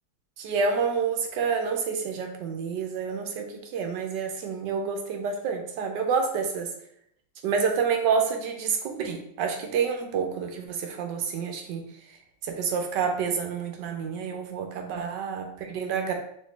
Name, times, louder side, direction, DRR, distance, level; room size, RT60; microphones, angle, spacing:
voice 1, 0.4-6.7 7.4-11.8 12.4-16.1, right 6 dB, 75° right, 4 dB, 1.3 m, -28 dB
4.2 x 3.2 x 3.2 m, 0.71 s
omnidirectional pair, 2.0 m